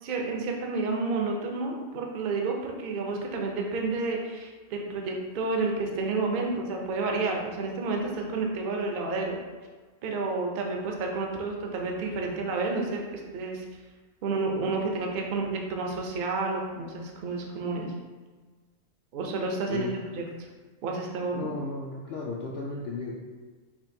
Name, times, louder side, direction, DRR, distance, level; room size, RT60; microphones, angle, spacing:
voice 1, 0.0-9.4 10.0-13.6 14.2-17.9 19.1-19.9 20.8-21.5, right 3 dB, 65° right, 1 dB, 0.5 m, -30 dB
voice 2, 21.3-23.2, left 3 dB, 80° left, -3 dB, 0.5 m, -34 dB
5.8 x 2.4 x 2.7 m, 1.4 s
omnidirectional pair, 1.6 m